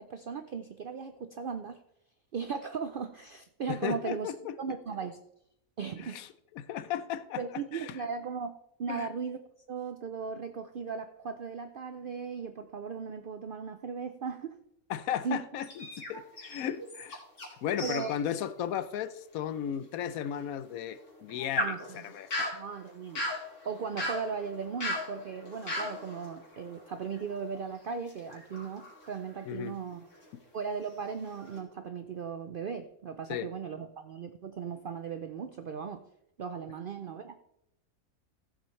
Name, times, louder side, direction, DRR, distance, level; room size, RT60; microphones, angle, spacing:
voice 1, 0.0-1.8 2.3-4.3 4.6-5.2 5.8-6.2 7.4-9.4 9.7-14.6 15.2-15.4 17.8-18.1 21.6-22.0 22.5-23.2 23.6-30.1 30.5-36.0 36.4-37.4, right 6 dB, 70° right, 8 dB, 0.5 m, -37 dB
voice 2, 3.7-4.5 6.0-6.3 6.5-8.0 8.9-9.1 14.9-17.2 17.6-22.6 29.5-29.8 33.3-33.5, left 9 dB, 75° left, 14 dB, 1.0 m, -35 dB
sound 1, 15.6-17.5 17.8-18.2 18.6-18.7 19.3-19.4 21.0-27.6 28.1-29.6 30.1-30.4 30.8-31.6, left 1 dB, 55° left, 2.7 m, -38 dB
15.0 x 7.4 x 3.2 m, 0.76 s
omnidirectional pair, 1.5 m